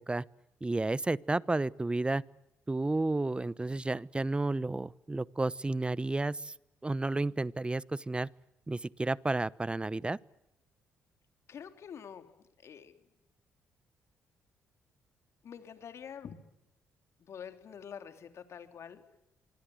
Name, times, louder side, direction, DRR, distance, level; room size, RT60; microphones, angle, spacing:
voice 1, 0.6-2.2 2.7-6.5 6.8-8.3 8.7-10.2, right 2 dB, 20° right, 21 dB, 1.0 m, -31 dB
voice 2, 11.5-12.3 12.6-13.0 15.4-16.4 17.2-19.0, left 7 dB, 60° left, 8 dB, 3.4 m, -46 dB
25.5 x 24.5 x 7.9 m, 0.92 s
hypercardioid pair, 50°, 5 cm